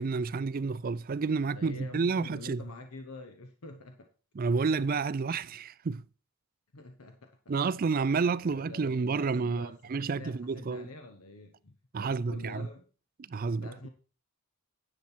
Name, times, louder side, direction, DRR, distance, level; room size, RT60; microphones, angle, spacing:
voice 1, 0.0-2.6 4.4-6.0 7.5-10.9 11.9-12.7 13.2-13.7, right 4 dB, 40° right, 0.4 m, -30 dB
voice 2, 1.4-4.1 6.7-7.6 7.9-9.7 10.0-12.9 13.5-13.9, left 3 dB, 80° left, 1.1 m, -47 dB
10.5 x 7.5 x 4.4 m
head